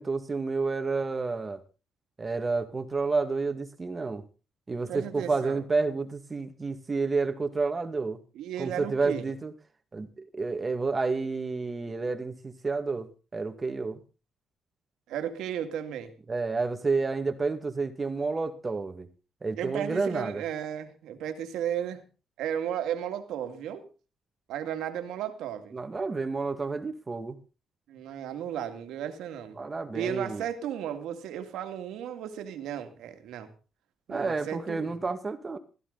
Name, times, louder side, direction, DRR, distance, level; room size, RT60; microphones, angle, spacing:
voice 1, 0.0-1.6 2.2-4.2 4.7-8.2 8.6-9.5 9.9-14.0 16.3-19.1 19.4-20.4 25.7-27.4 29.6-30.4 34.1-35.6, right 4 dB, 30° right, 8 dB, 2.0 m, -30 dB
voice 2, 4.9-5.6 8.3-9.2 15.1-16.1 19.6-22.0 22.4-23.8 24.5-25.7 27.9-29.6 29.9-33.5 34.1-34.9, right 10 dB, 85° right, 7 dB, 2.3 m, -34 dB
16.0 x 14.5 x 4.1 m, 0.34 s
cardioid pair, 90°, 0 cm